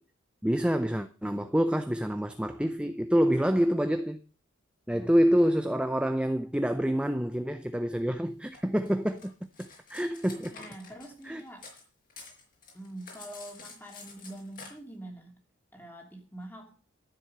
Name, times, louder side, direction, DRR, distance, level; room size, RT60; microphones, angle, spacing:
voice 1, 0.4-4.2 4.9-9.3 9.6-10.5 11.2-11.4, equal, 5° right, 0.5 m, -27 dB
voice 2, 4.9-5.5 10.5-11.7 12.7-15.4 15.7-16.7, right 1 dB, 10° left, 2.8 m, -45 dB
Cutlery silverware, 8.5-11.8 12.1-14.7, left 4 dB, 45° left, 5.1 m, -48 dB
13.0 x 7.7 x 6.7 m
head